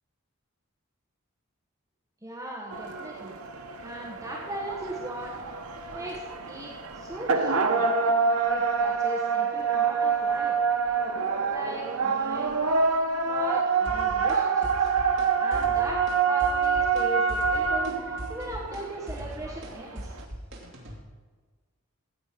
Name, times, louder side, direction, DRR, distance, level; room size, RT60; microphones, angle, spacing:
voice 1, 2.2-3.3 3.8-5.4 5.9-7.9 8.5-10.5 11.5-12.6 13.2-14.9 15.4-20.1, right 1 dB, 15° right, -3 dB, 1.2 m, -38 dB
sound 1, 2.7-20.2, right 5 dB, 85° right, 1.0 m, -26 dB
sound 2, 13.9-14.4 14.6-15.3 15.5-16.2 16.4-17.0 17.3-21.0, equal, 55° right, 2.5 m, -39 dB
15.0 x 8.1 x 5.1 m, 1.4 s
head